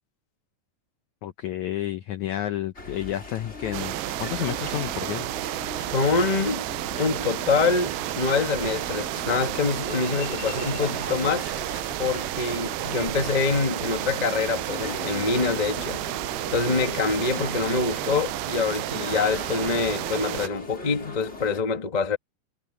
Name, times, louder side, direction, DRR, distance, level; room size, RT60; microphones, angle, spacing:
voice 1, 1.2-5.2, left 13 dB, 85° left, 1.6 m, -30 dB
sound 1, 2.7-21.6, left 2 dB, 15° left, 4.4 m, -40 dB
sound 2, 3.7-20.5, right 20 dB, 85° right, 2.5 m, -31 dB
voice 2, 5.8-6.7 7.0-11.5 12.0-16.0 16.5-22.2, left 4 dB, 65° left, 0.4 m, -25 dB
sound 3, 7.6-13.6, right 4 dB, 50° right, 5.4 m, -44 dB
omnidirectional pair, 4.3 m